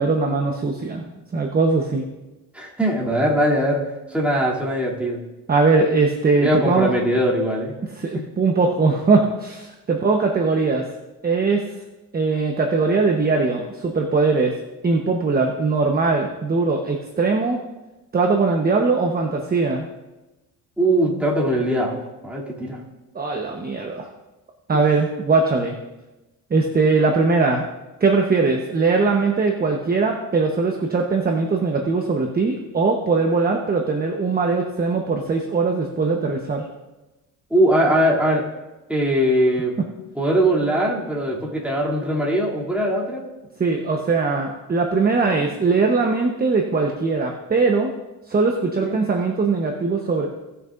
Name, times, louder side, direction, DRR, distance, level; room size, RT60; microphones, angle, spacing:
voice 1, 0.0-2.0 5.5-6.9 8.0-10.9 11.2-11.6 12.1-14.5 14.8-17.6 18.1-19.8 23.1-24.1 24.7-25.8 26.5-27.6 28.0-36.7 43.6-47.9 48.3-50.3, right 4 dB, 25° right, 2 dB, 1.1 m, -20 dB
voice 2, 2.5-5.2 6.4-7.7 8.1-8.2 20.8-22.8 24.7-24.8 37.5-38.4 38.9-39.8 40.1-43.3 48.8-49.0, right 1 dB, 5° right, -4 dB, 2.9 m, -21 dB
18.5 x 6.9 x 2.6 m, 1.1 s
cardioid pair, 100°, 36 cm